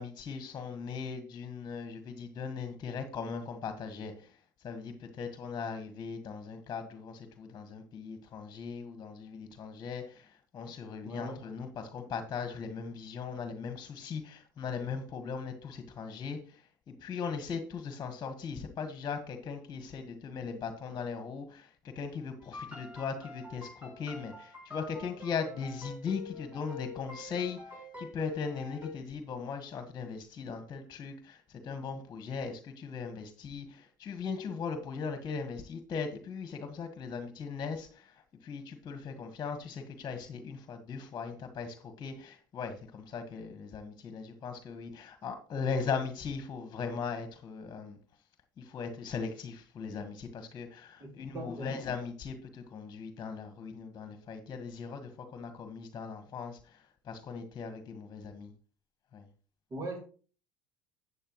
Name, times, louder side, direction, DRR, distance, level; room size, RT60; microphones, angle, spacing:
voice 1, 0.0-4.4 4.6-48.0 48.6-58.5 59.1-59.3, left 5 dB, 35° left, 7 dB, 1.5 m, -39 dB
voice 2, 11.0-11.5 51.0-51.8 59.7-60.0, right 2 dB, 35° right, 2 dB, 2.5 m, -40 dB
sound 1, 22.4-28.9, left 3 dB, 15° right, 4.9 m, -46 dB
12.0 x 8.5 x 3.1 m, 0.40 s
hypercardioid pair, 80°, 10 cm